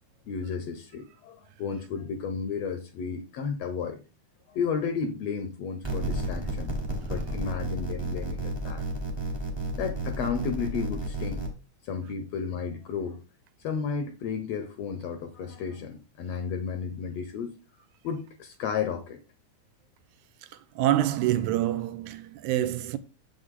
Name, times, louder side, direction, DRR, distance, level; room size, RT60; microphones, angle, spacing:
voice 1, 0.3-4.0 4.5-6.8 7.0-8.8 9.8-11.5 11.8-13.2 13.6-17.6 18.0-19.2, left 6 dB, 70° left, 1.7 m, -33 dB
sound 1, 5.8-11.5, right 2 dB, 25° right, 0.6 m, -32 dB
voice 2, 20.8-23.0, right 13 dB, 85° right, 2.1 m, -26 dB
6.9 x 6.5 x 3.7 m
omnidirectional pair, 3.5 m